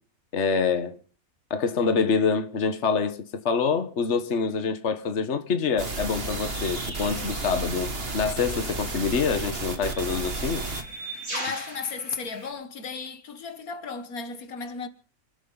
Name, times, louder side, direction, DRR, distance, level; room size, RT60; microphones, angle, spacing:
voice 1, 0.3-1.0 1.5-10.7, left 5 dB, 50° left, 1.6 m, -26 dB
sound 1, 5.8-10.8, right 2 dB, 45° right, 1.9 m, -32 dB
sound 2, 6.0-12.5, right 2 dB, 70° right, 4.8 m, -40 dB
voice 2, 11.3-14.9, left 5 dB, 80° left, 1.8 m, -35 dB
29.0 x 12.5 x 4.0 m
omnidirectional pair, 1.5 m